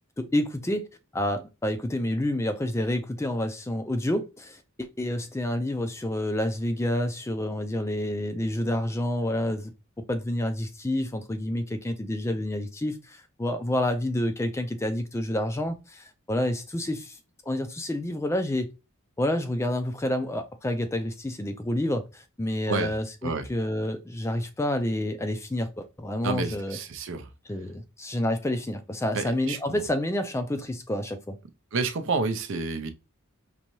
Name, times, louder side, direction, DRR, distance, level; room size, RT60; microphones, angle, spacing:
voice 1, 0.2-0.9 1.1-9.7 10.1-17.2 17.5-18.7 19.2-26.8 27.5-31.4, left 1 dB, 10° left, 0.4 m, -29 dB
voice 2, 26.2-27.3 29.1-29.8 31.7-32.9, right 4 dB, 60° right, 0.5 m, -29 dB
5.3 x 2.7 x 3.0 m
head